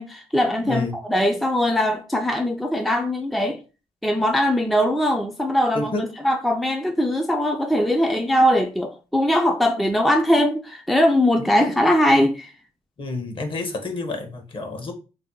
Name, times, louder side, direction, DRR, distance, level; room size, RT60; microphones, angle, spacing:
voice 1, 0.0-3.6 4.0-12.5, equal, ahead, 0.4 m, -21 dB
voice 2, 0.6-1.0 5.7-6.0 13.0-14.9, left 2 dB, 50° left, 0.8 m, -28 dB
2.7 x 2.1 x 3.7 m
cardioid pair, 85°, 12 cm